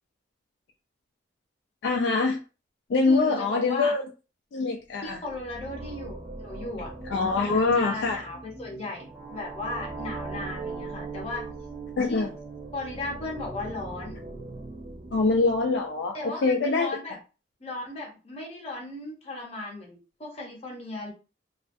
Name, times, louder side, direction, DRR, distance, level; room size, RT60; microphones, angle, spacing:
voice 1, 1.8-2.4 2.9-4.0 4.5-5.2 7.1-8.2 12.0-12.3 15.1-16.2 16.4-16.9, left 3 dB, 60° left, 0.3 m, -24 dB
voice 2, 3.0-4.0 5.0-6.9 7.4-11.5 12.1-12.3 12.7-14.2 16.1-17.2 17.6-21.1, left 2 dB, 30° left, 0.8 m, -36 dB
sound 1, 4.9-16.1, right 3 dB, 30° right, 0.4 m, -40 dB
2.4 x 2.1 x 2.5 m
head